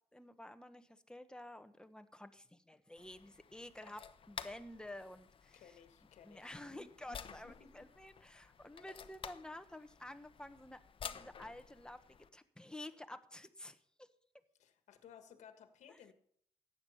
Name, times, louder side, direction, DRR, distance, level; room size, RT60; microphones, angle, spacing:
voice 1, 0.1-5.8 6.2-14.1 15.9-16.0, left 1 dB, 5° left, 9 dB, 1.3 m, -51 dB
sound 1, 3.0-12.3, left 7 dB, 45° left, 1.0 m, -52 dB
voice 2, 5.5-7.9 14.5-16.1, left 7 dB, 80° left, 8 dB, 1.6 m, -59 dB
15.0 x 9.6 x 5.7 m, 0.64 s
cardioid pair, 80°, 12 cm